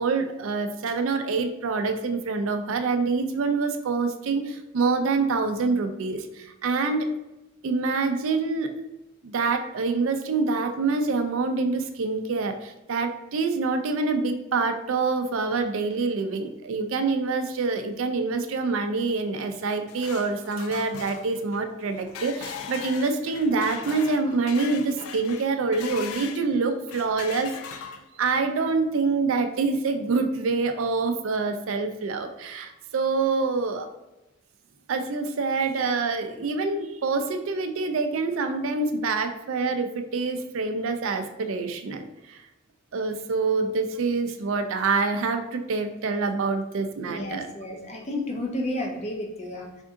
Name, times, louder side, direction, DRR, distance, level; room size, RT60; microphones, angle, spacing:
voice 1, 0.0-7.1 7.6-8.7 9.2-33.9 34.9-42.4 42.9-47.5, right 4 dB, 75° right, 7 dB, 0.4 m, -26 dB
sound 1, 19.5-26.5 26.9-28.3, left 7 dB, 85° left, 0.3 m, -39 dB
voice 2, 47.0-49.8, left 1 dB, 30° left, 1 dB, 0.5 m, -32 dB
3.5 x 2.6 x 3.6 m, 0.95 s
head